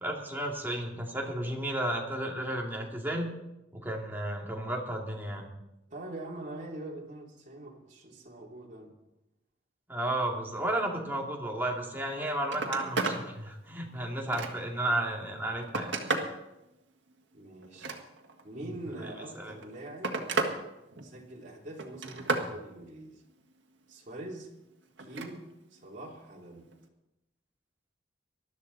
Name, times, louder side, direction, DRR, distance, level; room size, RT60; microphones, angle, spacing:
voice 1, 0.0-3.3 3.7-5.5 9.9-16.0 19.4-19.5, right 1 dB, 10° right, -1 dB, 2.4 m, -33 dB
voice 2, 5.9-8.9 17.3-18.0 18.4-20.2 21.0-23.2 23.9-24.5 25.0-26.7, right 1 dB, 45° right, -3 dB, 3.1 m, -44 dB
Telephone, 12.0-12.1 12.4-13.2 13.7-14.8 15.4-16.4 17.6-18.4 19.4-20.6 20.9-21.4 21.8-22.5 25.0-25.3 26.7-26.8, right 3 dB, 80° right, 1.8 m, -33 dB
20.0 x 12.5 x 4.1 m, 0.91 s
head